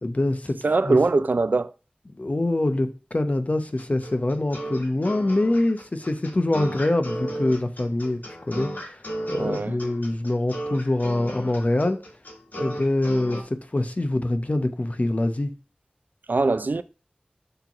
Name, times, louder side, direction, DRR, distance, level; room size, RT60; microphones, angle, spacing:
voice 1, 0.0-0.6 0.8-1.0 2.1-8.2 8.5-12.0 12.6-15.5, left 1 dB, 50° left, 0.8 m, -25 dB
voice 2, 0.6-1.7 9.3-9.8 16.3-16.8, right 3 dB, 75° right, 0.4 m, -22 dB
sound 1, 3.8-13.4, equal, 70° left, 1.5 m, -34 dB
6.6 x 3.1 x 5.8 m
wide cardioid pair, 55°, 3 cm